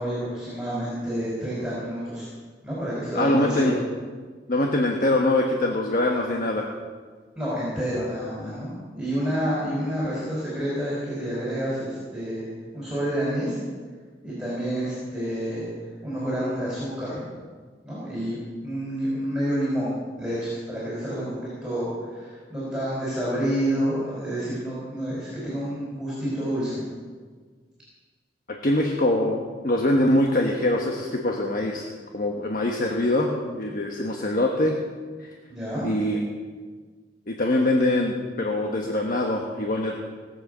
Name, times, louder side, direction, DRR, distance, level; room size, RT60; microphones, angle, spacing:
voice 1, 0.0-2.3 2.6-3.8 7.3-12.5 12.7-13.6 14.2-15.7 16.0-17.2 17.8-26.8 35.5-35.9, equal, 5° right, -8 dB, 4.7 m, -29 dB
voice 2, 3.1-3.8 4.5-6.7 28.5-34.8 35.8-36.3 37.3-40.0, left 1 dB, 50° left, 1 dB, 1.2 m, -23 dB
18.5 x 7.7 x 6.7 m, 1.5 s
head